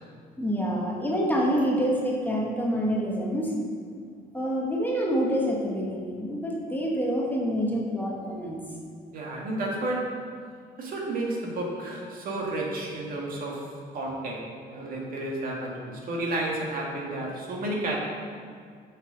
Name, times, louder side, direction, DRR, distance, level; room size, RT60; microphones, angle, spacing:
voice 1, 0.4-3.5 4.3-8.6, equal, 10° left, -2 dB, 1.5 m, -27 dB
voice 2, 9.1-10.4 10.8-18.0, right 2 dB, 55° right, -2 dB, 2.0 m, -32 dB
7.2 x 7.0 x 5.2 m, 2.2 s
cardioid pair, 110°, 17 cm